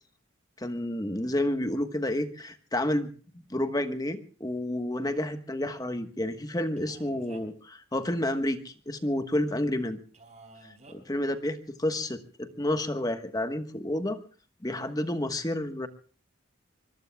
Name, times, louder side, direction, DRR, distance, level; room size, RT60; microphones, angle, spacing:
voice 1, 0.6-3.1 3.5-10.0 11.1-14.2 14.6-15.9, left 1 dB, 20° left, 8 dB, 1.2 m, -30 dB
Male speech man speaking, 6.8-7.7 10.1-11.0, right 2 dB, 35° right, 4.4 m, -52 dB
25.5 x 23.0 x 2.3 m, 0.40 s
head